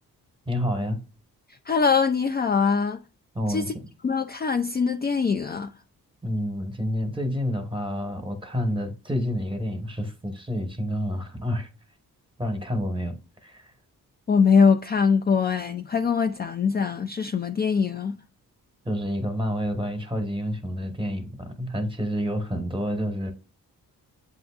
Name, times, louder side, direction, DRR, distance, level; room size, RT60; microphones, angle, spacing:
voice 1, 0.5-1.0 3.3-3.7 6.2-11.7 12.4-13.1 13.4-13.7 18.8-23.3, equal, 10° right, 1.1 m, -28 dB
voice 2, 1.7-3.0 3.5-3.7 4.0-5.7 14.3-18.1, left 5 dB, 25° left, 0.4 m, -22 dB
7.5 x 2.6 x 2.4 m
supercardioid pair, 45°, 40 cm